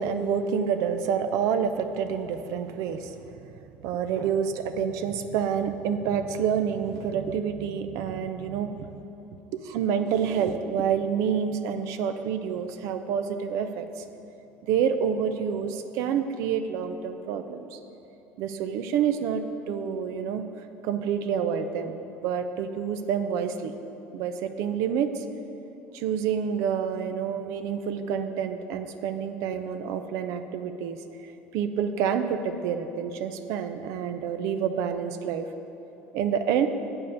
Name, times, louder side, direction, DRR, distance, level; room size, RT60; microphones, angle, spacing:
voice 1, 0.0-3.1 3.4-3.5 3.8-8.9 9.5-14.0 14.7-17.8 18.4-20.4 20.8-23.7 24.1-25.2 25.9-31.0 31.5-35.4 36.1-36.7, right 7 dB, 70° right, 8 dB, 0.6 m, -28 dB
7.8 x 5.4 x 6.9 m, 2.9 s
supercardioid pair, 80°, 6 cm